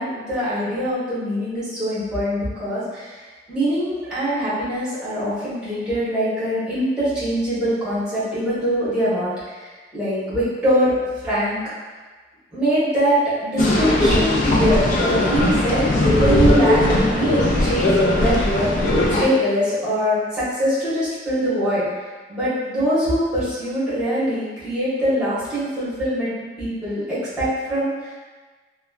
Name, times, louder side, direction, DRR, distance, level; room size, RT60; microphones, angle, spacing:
voice 1, 0.0-3.2 3.5-10.9 11.2-11.6 12.5-17.9 18.2-18.7 19.2-21.9 22.3-28.1, equal, 5° right, -13 dB, 1.4 m, -23 dB
sound 1, 13.6-19.3, left 1 dB, 50° left, 0.4 m, -18 dB
3.1 x 2.2 x 2.5 m, 1.4 s
head